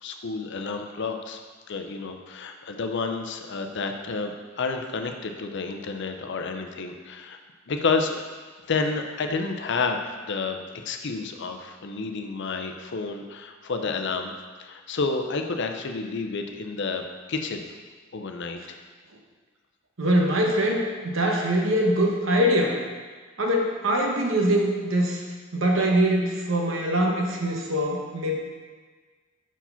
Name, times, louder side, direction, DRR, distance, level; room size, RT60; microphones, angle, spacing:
voice 1, 0.0-1.4 1.7-7.4 7.7-8.2 8.7-14.3 14.6-17.7 18.1-18.8, left 4 dB, 60° left, 5 dB, 0.6 m, -30 dB
voice 2, 20.0-22.8 23.4-25.2 25.5-28.3, right 1 dB, 70° right, 0 dB, 1.1 m, -23 dB
5.9 x 4.7 x 5.6 m, 1.4 s
head